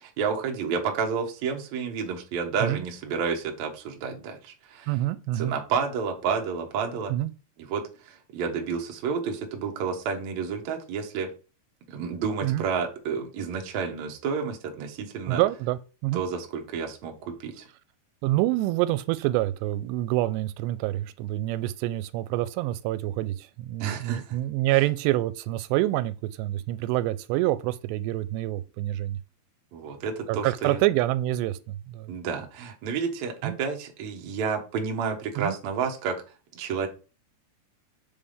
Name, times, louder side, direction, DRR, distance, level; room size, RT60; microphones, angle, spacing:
voice 1, 0.0-4.9 5.3-7.1 7.6-11.3 11.9-15.4 16.1-17.6 23.8-24.4 24.7-24.8 29.7-30.8 32.1-36.2 36.5-36.9, right 6 dB, 70° right, 1.8 m, -30 dB
voice 2, 4.9-5.5 7.1-7.3 12.4-12.6 15.3-16.2 18.2-29.2 30.3-32.1 33.4-33.6 35.4-35.6, right 16 dB, 85° right, 2.7 m, -27 dB
6.9 x 3.5 x 5.4 m
omnidirectional pair, 4.9 m